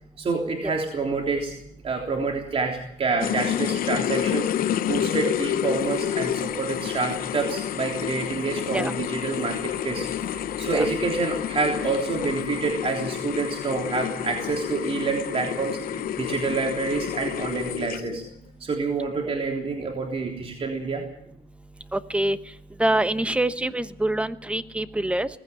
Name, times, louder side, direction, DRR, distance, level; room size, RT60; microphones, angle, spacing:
voice 1, 0.2-1.5 1.8-18.2 18.6-21.0, right 4 dB, 35° right, 1 dB, 3.4 m, -28 dB
sound 1, 3.2-18.3, left 11 dB, 60° left, 0.8 m, -29 dB
voice 2, 21.9-22.4 22.8-25.3, right 1 dB, 5° right, 12 dB, 1.0 m, -25 dB
19.0 x 15.5 x 9.1 m, 0.73 s
cardioid pair, 110°, 17 cm